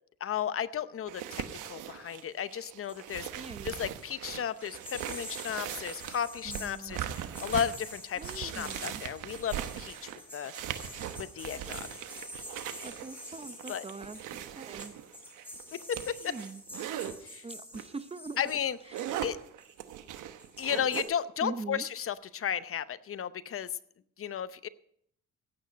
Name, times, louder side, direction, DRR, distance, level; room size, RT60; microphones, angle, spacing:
voice 1, 0.2-10.5 11.2-11.9 13.7-13.9 15.7-16.4 17.2-17.5 18.4-18.9 19.2-19.4 20.6-23.8 24.2-24.7, left 8 dB, 45° left, 15 dB, 0.7 m, -34 dB
sound 1, 1.1-17.1 17.7-17.9 18.3-21.0, right 11 dB, 90° right, 1.0 m, -40 dB
sound 2, 2.1-3.1 3.4-4.0 4.5-20.0 20.4-21.1, left 1 dB, 5° left, 6.9 m, -47 dB
voice 2, 3.4-3.8 6.5-7.1 8.2-9.0 12.8-14.2 14.6-14.9 16.2-16.6 17.4-18.4 21.4-21.9, right 3 dB, 20° right, 13 dB, 0.7 m, -42 dB
16.0 x 9.0 x 5.2 m, 0.68 s
cardioid pair, 90°, 30 cm